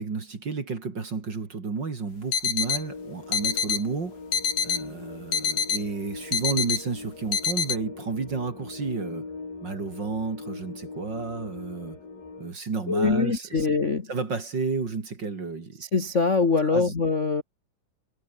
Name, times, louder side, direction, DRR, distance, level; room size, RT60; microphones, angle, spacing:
voice 1, 0.0-4.2 4.6-9.3 9.6-12.0 12.4-13.7 14.1-15.8 16.7-16.9, right 4 dB, 35° right, 3.0 m, -31 dB
sound 1, 2.3-2.8 3.3-3.8 4.3-4.8 5.3-5.8 6.3-6.8 7.3-7.8, left 7 dB, 70° left, 4.7 m, -26 dB
sound 2, 2.5-12.5, left 4 dB, 85° left, 9.6 m, -41 dB
voice 2, 12.9-14.1 15.9-17.4, left 4 dB, 35° left, 1.3 m, -23 dB
omnidirectional pair, 3.9 m